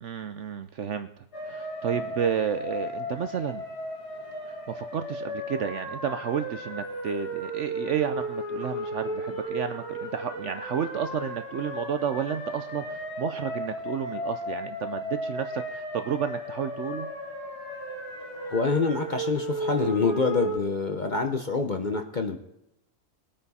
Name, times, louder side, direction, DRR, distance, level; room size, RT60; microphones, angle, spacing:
voice 1, 0.0-3.6 4.7-17.1, right 8 dB, 60° right, 10 dB, 0.8 m, -31 dB
sound 1, 1.3-20.6, equal, 85° left, 4.4 m, -34 dB
voice 2, 18.4-22.4, left 4 dB, 40° left, 5 dB, 0.7 m, -26 dB
21.0 x 8.8 x 4.2 m, 0.82 s
omnidirectional pair, 1.6 m